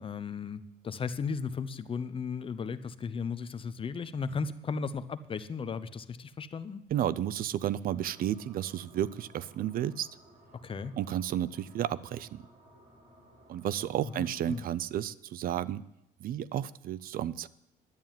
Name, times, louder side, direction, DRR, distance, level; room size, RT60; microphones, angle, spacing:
voice 1, 0.0-6.8 10.6-10.9 14.1-14.6, left 5 dB, 30° left, 14 dB, 0.8 m, -36 dB
voice 2, 6.9-10.1 11.0-12.4 13.5-15.8 16.2-17.5, right 11 dB, 60° right, 19 dB, 0.5 m, -32 dB
sound 1, 7.9-14.6, right 1 dB, 40° right, 4.9 m, -58 dB
11.0 x 9.0 x 9.1 m, 0.82 s
cardioid pair, 110°, 17 cm